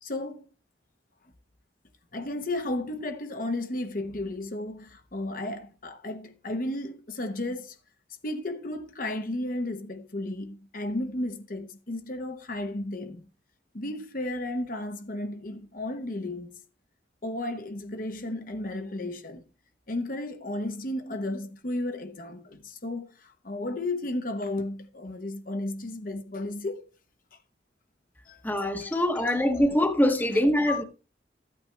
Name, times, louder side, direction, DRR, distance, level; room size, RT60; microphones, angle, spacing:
voice 1, 0.0-0.5 2.1-7.8 8.2-13.2 13.7-16.6 17.2-19.4 19.9-26.9 28.3-28.4 28.8-29.7 30.7-30.8, left 1 dB, 50° left, 1.0 m, -33 dB
voice 2, 28.4-30.8, left 1 dB, 10° left, 1.0 m, -24 dB
13.5 x 8.7 x 3.3 m
head